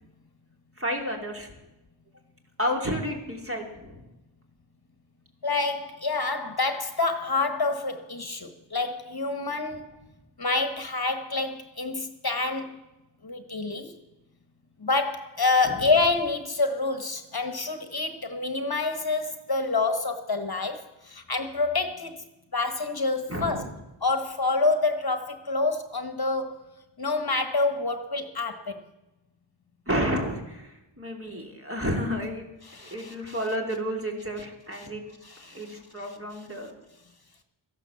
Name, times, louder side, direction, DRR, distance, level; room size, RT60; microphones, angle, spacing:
voice 1, 0.8-1.5 2.6-4.0 15.6-15.9 23.3-23.7 29.9-32.5 32.8-35.0 35.5-36.7, equal, 25° right, 3.0 m, -31 dB
voice 2, 5.4-9.9 10.4-12.8 13.2-13.9 14.8-22.2 22.5-23.6 24.0-26.6 27.0-28.8 32.7-33.4 34.8-34.9 35.2-35.8, left 3 dB, 50° left, 1.3 m, -27 dB
14.0 x 11.0 x 7.1 m
wide cardioid pair, 50°, 48 cm